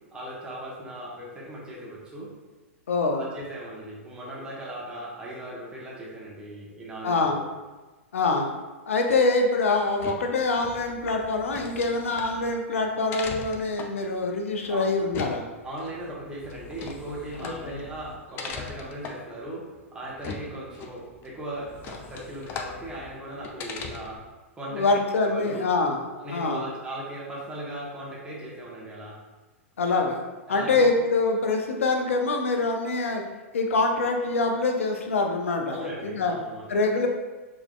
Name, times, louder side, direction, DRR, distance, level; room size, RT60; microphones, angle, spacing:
voice 1, 0.1-2.3 3.1-7.4 14.7-14.8 15.6-19.6 19.9-24.2 24.5-24.9 25.2-25.6 26.1-29.2 30.5-30.9 35.7-36.7, right 1 dB, 10° right, -5 dB, 1.1 m, -38 dB
voice 2, 2.9-3.3 7.0-7.4 8.1-8.5 8.9-15.5 17.4-17.8 24.7-26.0 26.3-26.7 29.8-30.2 30.5-33.2 33.5-36.3 36.7-37.1, left 3 dB, 70° left, 3 dB, 0.6 m, -25 dB
sound 1, 9.8-24.3, left 5 dB, 30° left, 0.4 m, -41 dB
4.8 x 3.1 x 2.3 m, 1.2 s
figure-of-eight pair, 105°, 7 cm